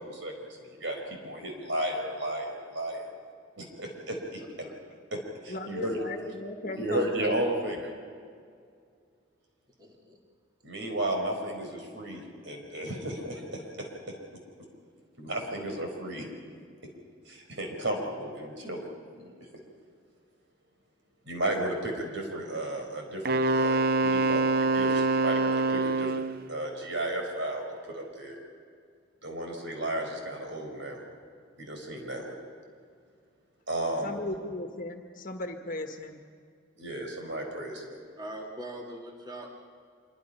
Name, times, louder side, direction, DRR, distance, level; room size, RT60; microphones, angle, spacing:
voice 1, 0.0-3.1 3.6-4.7 5.1-6.0 6.6-7.9 10.6-14.2 15.2-16.3 17.3-19.3 21.2-28.4 29.2-31.0 31.6-32.4 33.7-34.2 36.8-38.0, right 1 dB, 65° right, 2 dB, 4.6 m, -34 dB
voice 2, 4.4-4.8 9.8-10.2 38.2-39.5, right 1 dB, 20° right, 0 dB, 2.2 m, -42 dB
voice 3, 5.5-7.3 34.0-36.2, left 2 dB, 40° left, 5 dB, 1.6 m, -37 dB
Wind instrument woodwind instrument, 23.3-26.4, right 2 dB, 45° right, 0.6 m, -25 dB
26.0 x 23.0 x 5.7 m, 2.2 s
head